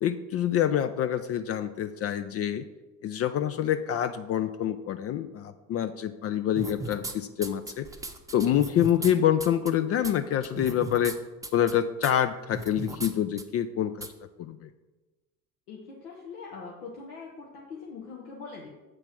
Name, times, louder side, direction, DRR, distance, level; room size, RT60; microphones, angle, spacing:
voice 1, 0.0-2.7 3.0-7.9 8.3-11.2 11.5-14.1 14.4-14.7, left 10 dB, 35° left, 10 dB, 0.4 m, -26 dB
sound 1, 6.6-7.1 7.4-9.1 9.4-9.7 10.0-10.1 10.4-11.1 11.4-11.7 12.0-12.1 12.5-13.1 13.4-13.5 14.0-14.1, right 2 dB, 5° right, 0.8 m, -36 dB
voice 2, 15.7-18.7, left 4 dB, 70° left, -2 dB, 1.3 m, -42 dB
7.6 x 4.5 x 5.9 m, 1.2 s
figure-of-eight pair, 60°, 46 cm